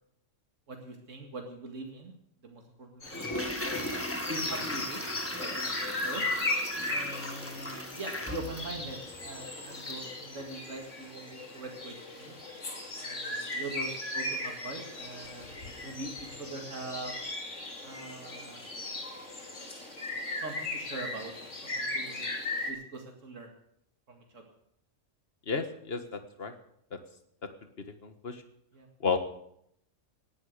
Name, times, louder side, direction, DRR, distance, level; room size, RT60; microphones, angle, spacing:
voice 1, 0.7-2.1 2.4-3.9 4.3-5.0 5.4-6.2 6.9-12.4 12.9-15.5 15.8-17.1 17.8-18.6 20.4-22.3 22.7-23.5 24.1-24.4 28.7-28.9, right 2 dB, 80° right, 2 dB, 2.5 m, -42 dB
sound 1, 3.0-22.7, left 2 dB, 75° left, 3.2 m, -37 dB
Toilet flush, 3.1-10.1 10.4-10.5, left 1 dB, 10° left, 1.7 m, -38 dB
voice 2, 25.5-26.5 28.0-28.4 29.0-29.2, left 5 dB, 50° left, 8 dB, 1.8 m, -32 dB
18.5 x 11.5 x 6.6 m, 0.72 s
omnidirectional pair, 1.3 m